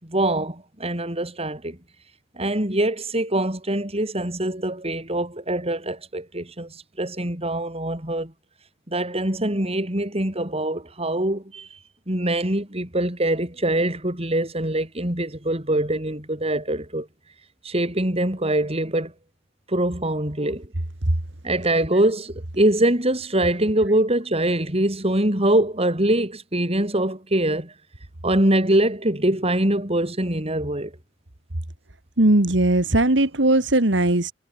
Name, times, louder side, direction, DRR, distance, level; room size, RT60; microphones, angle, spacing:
voice 1, 0.0-1.8 2.4-8.3 8.9-11.7 12.1-17.1 17.6-19.1 19.7-20.7 21.4-27.7 28.2-30.9, right 1 dB, 35° right, 5.5 m, -23 dB
voice 2, 32.2-34.3, right 1 dB, 70° right, 2.1 m, -18 dB
head